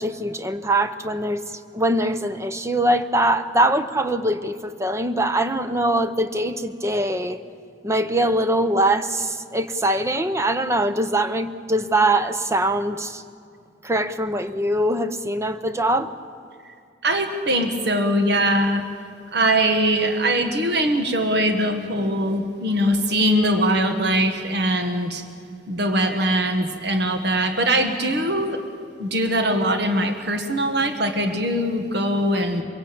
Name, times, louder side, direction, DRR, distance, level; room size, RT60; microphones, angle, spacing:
voice 1, 0.0-7.4 7.8-13.2 13.8-16.1, right 1 dB, 15° right, 10 dB, 0.8 m, -22 dB
voice 2, 17.0-18.8 19.3-25.2 25.7-28.6 29.0-32.6, right 1 dB, 60° right, 5 dB, 1.6 m, -21 dB
24.5 x 16.5 x 8.7 m, 2.4 s
head